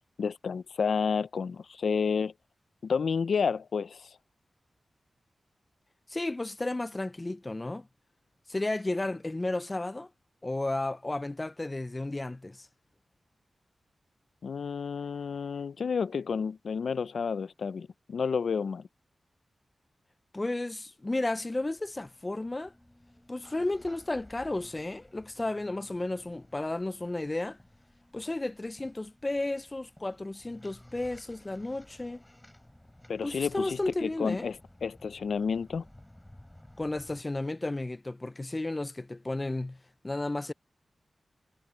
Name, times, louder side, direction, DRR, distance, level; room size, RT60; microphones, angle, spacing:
voice 1, 0.2-2.3 2.8-4.1 14.4-18.8 33.1-35.8, left 6 dB, 80° left, 0.5 m, -30 dB
voice 2, 6.1-7.9 8.5-10.1 10.4-12.7 20.3-22.7 23.3-27.6 28.1-32.2 33.2-34.5 36.8-39.8 40.0-40.5, left 2 dB, 30° left, 0.4 m, -33 dB
sound 1, 21.1-37.2, left 1 dB, 10° left, 7.1 m, -56 dB
cardioid pair, 60°, 0 cm